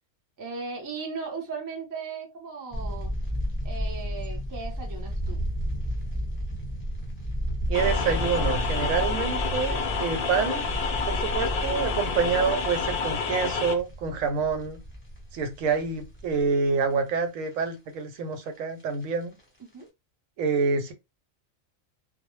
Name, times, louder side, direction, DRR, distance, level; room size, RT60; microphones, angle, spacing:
voice 1, 0.4-3.1 3.6-5.4 19.6-19.9, right 4 dB, 25° right, 0.4 m, -37 dB
sound 1, 2.7-16.8 17.2-17.3 17.4-17.7 18.6-19.0 19.4-19.5 19.8-19.9, equal, 10° left, 0.8 m, -32 dB
sound 2, 7.7-13.7, left 5 dB, 60° left, 0.6 m, -29 dB
voice 2, 7.7-10.7 11.1-14.8 15.3-19.4 20.4-20.9, right 5 dB, 80° right, 1.0 m, -27 dB
2.3 x 2.1 x 3.0 m
omnidirectional pair, 1.4 m